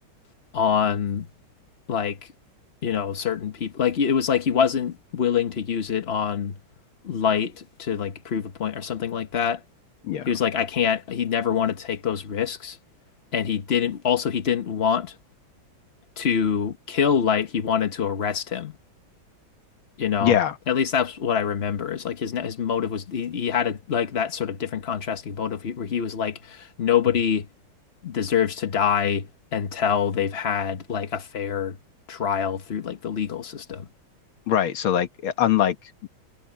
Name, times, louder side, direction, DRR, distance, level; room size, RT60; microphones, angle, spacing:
voice 1, 0.5-1.3 1.9-2.2 2.8-6.5 7.0-9.6 10.3-12.8 13.3-15.1 16.2-18.7 20.0-20.4 20.7-27.5 28.0-29.3 29.5-31.8 32.1-33.8, left 7 dB, 45° left, 0.8 m, -25 dB
voice 2, 20.2-20.6 34.5-35.8 36.0-36.1, left 10 dB, 90° left, 2.1 m, -22 dB
omnidirectional pair, 2.2 m